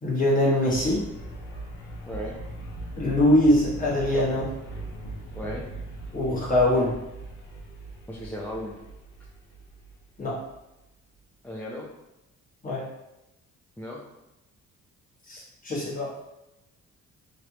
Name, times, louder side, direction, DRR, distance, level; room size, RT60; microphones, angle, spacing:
voice 1, 0.0-1.0 3.0-4.5 6.1-7.0 10.2-10.4 12.6-12.8 15.3-16.1, left 1 dB, 25° left, -6 dB, 1.4 m, -23 dB
sound 1, 0.6-10.6, right 2 dB, 75° left, 0.9 m, -40 dB
voice 2, 2.1-2.4 5.3-5.6 8.1-8.8 11.4-11.9 13.8-14.0, equal, 5° left, -5 dB, 0.5 m, -35 dB
3.3 x 2.5 x 3.0 m, 0.95 s
cardioid pair, 90°, 30 cm